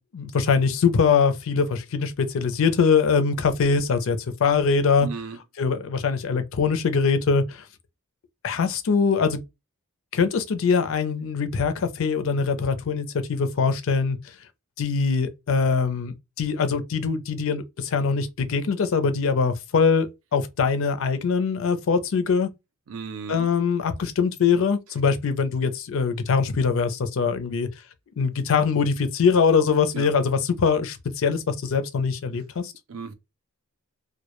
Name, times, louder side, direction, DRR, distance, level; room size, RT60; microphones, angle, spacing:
voice 1, 0.1-5.1 5.6-7.6 8.4-9.4 10.1-14.2 14.8-22.5 23.3-27.7 28.2-32.7, left 5 dB, 65° left, 0.4 m, -23 dB
voice 2, 5.0-5.4 22.9-23.5 29.9-30.1 32.9-33.1, right 5 dB, 65° right, 0.4 m, -35 dB
2.1 x 2.1 x 2.9 m
head